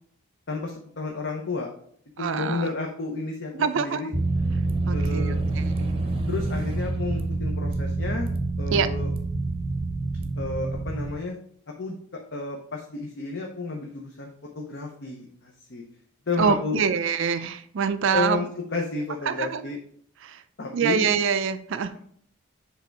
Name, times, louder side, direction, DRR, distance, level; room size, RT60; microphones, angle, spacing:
voice 1, 0.5-1.7 2.2-4.1 4.9-5.4 6.3-8.3 8.6-9.1 10.4-11.4 11.8-12.0 12.3-15.8 16.3-16.8 18.1-19.8 20.6-21.1, left 3 dB, 55° left, 1 dB, 0.8 m, -31 dB
voice 2, 2.2-2.6 3.5-4.0 4.9-6.0 8.7-8.9 16.4-18.4 19.3-19.6 20.2-20.4 20.7-21.9, right 6 dB, 60° right, 11 dB, 0.4 m, -25 dB
sound 1, 4.1-11.1, right 2 dB, 25° right, 0.7 m, -27 dB
7.6 x 3.4 x 4.5 m, 0.62 s
head